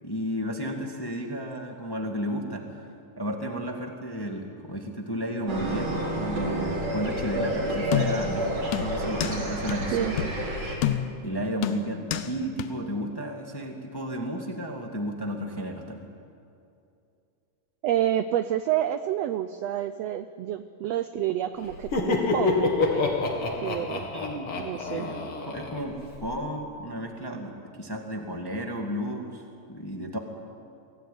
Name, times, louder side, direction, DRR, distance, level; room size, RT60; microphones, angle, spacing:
voice 1, 0.0-2.6 3.2-10.1 11.2-16.1 24.1-24.6 24.9-29.4 29.7-30.2, equal, 10° left, 2 dB, 1.2 m, -33 dB
sound 1, 5.5-10.8, right 1 dB, 50° right, 5.2 m, -29 dB
sound 2, 7.9-8.4 8.7-9.4 9.7-9.8 10.2-10.4 10.8-11.3 11.6-12.3 12.6-12.7, left 11 dB, 75° left, 2.4 m, -28 dB
voice 2, 9.9-10.3 17.8-24.1 24.6-25.1, right 11 dB, 80° right, 11 dB, 1.5 m, -29 dB
Laughter, 21.7-26.4, left 3 dB, 45° left, 2.8 m, -28 dB
23.5 x 17.5 x 9.4 m, 2.5 s
omnidirectional pair, 3.6 m